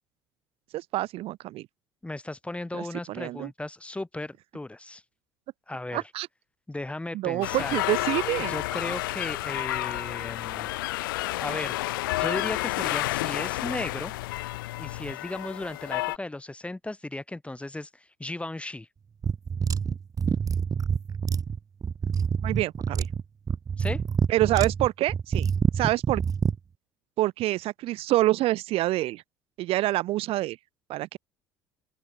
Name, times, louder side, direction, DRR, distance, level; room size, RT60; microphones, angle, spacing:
voice 1, 0.7-1.7 2.7-3.5 5.9-6.3 7.1-8.5 22.4-23.1 24.3-26.2 27.2-29.2 29.6-30.6 30.9-31.2, right 16 dB, 55° right, 1.8 m, -27 dB
voice 2, 2.0-5.0 5.7-6.0 6.7-7.8 8.5-10.7 11.4-11.8 12.2-14.1 14.8-18.9 23.8-24.0, left 2 dB, 10° left, 3.4 m, -36 dB
sound 1, 7.4-16.2, left 19 dB, 70° left, 0.8 m, -30 dB
sound 2, 19.2-26.6, right 6 dB, 30° right, 1.2 m, -27 dB
open air
figure-of-eight pair, 60°, 11 cm